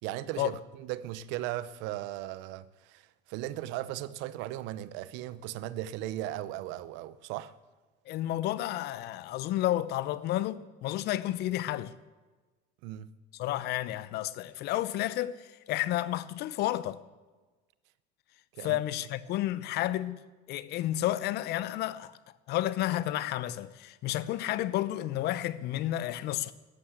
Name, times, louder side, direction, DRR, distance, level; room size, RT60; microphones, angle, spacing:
voice 1, 0.0-7.5 12.8-13.1 18.5-18.8, right 14 dB, 80° right, 0.8 m, -37 dB
voice 2, 8.1-11.9 13.4-17.0 18.6-20.2 20.5-22.2 22.5-26.5, left 14 dB, 60° left, 0.8 m, -31 dB
13.5 x 11.5 x 8.2 m
cardioid pair, 140°, 19 cm